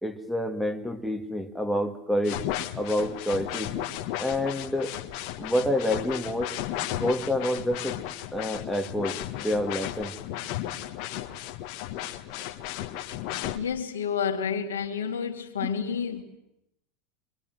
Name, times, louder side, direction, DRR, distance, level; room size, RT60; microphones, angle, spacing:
voice 1, 0.0-2.4 2.8-3.7 4.2-5.0 5.4-6.6 7.0-8.0 8.3-10.1 15.6-15.7, left 1 dB, ahead, 2.3 m, -28 dB
sound 1, 2.2-13.6, left 13 dB, 65° left, 1.6 m, -34 dB
voice 2, 13.5-16.2, left 7 dB, 90° left, 2.5 m, -29 dB
25.5 x 24.5 x 7.8 m
hypercardioid pair, 90°, 0 cm